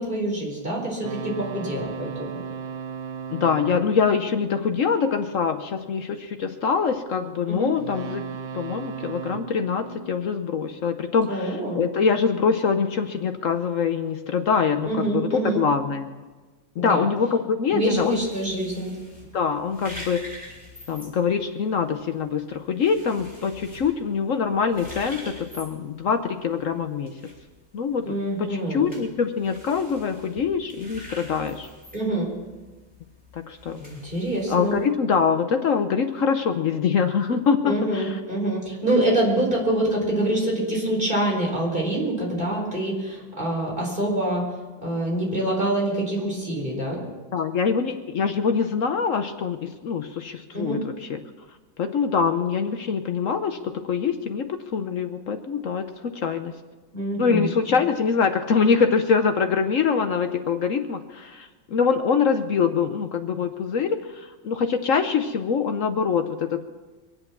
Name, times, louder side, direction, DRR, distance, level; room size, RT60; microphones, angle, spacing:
voice 1, 0.0-2.4 7.5-7.7 11.3-11.8 14.8-15.6 16.8-17.1 17.7-18.9 28.0-28.9 31.9-32.3 33.7-34.8 37.7-44.4 44.8-47.0 50.5-50.8 56.9-57.5, right 1 dB, 25° right, -3 dB, 4.6 m, -25 dB
sound 1, 1.0-5.4 7.8-11.1, right 6 dB, 75° right, 1.6 m, -37 dB
voice 2, 3.3-8.2 8.5-16.1 16.8-18.2 19.3-20.2 20.9-27.1 27.7-31.7 33.3-33.8 34.5-38.2 47.3-51.2 51.8-56.5 57.2-66.6, left 6 dB, 65° left, 7 dB, 0.8 m, -24 dB
sound 2, 17.8-34.9, left 1 dB, 5° right, 4.0 m, -46 dB
23.5 x 8.2 x 7.2 m, 1.3 s
omnidirectional pair, 2.2 m